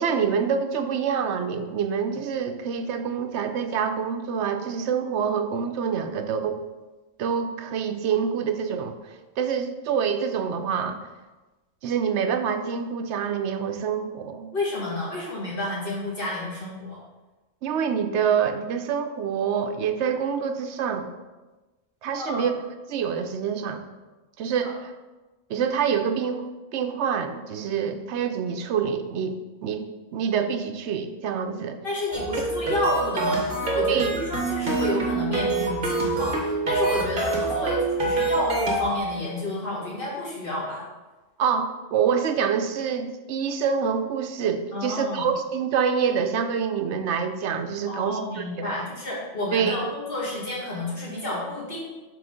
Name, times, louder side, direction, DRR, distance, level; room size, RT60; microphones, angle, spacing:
voice 1, 0.0-6.6 7.2-11.0 11.8-14.5 17.6-21.1 22.0-22.5 22.9-23.8 24.4-24.7 25.5-26.4 26.7-29.4 29.6-29.8 30.1-31.8 33.9-34.1 41.4-48.9 49.5-49.8, right 7 dB, 70° right, 7 dB, 0.8 m, -26 dB
voice 2, 14.5-17.0 22.2-22.4 24.6-24.7 31.8-40.8 44.7-45.2 47.9-51.8, left 2 dB, 45° left, -5 dB, 2.1 m, -30 dB
sound 1, 32.1-39.0, right 3 dB, 45° right, 1.5 m, -26 dB
6.7 x 3.8 x 5.0 m, 1.2 s
omnidirectional pair, 1.3 m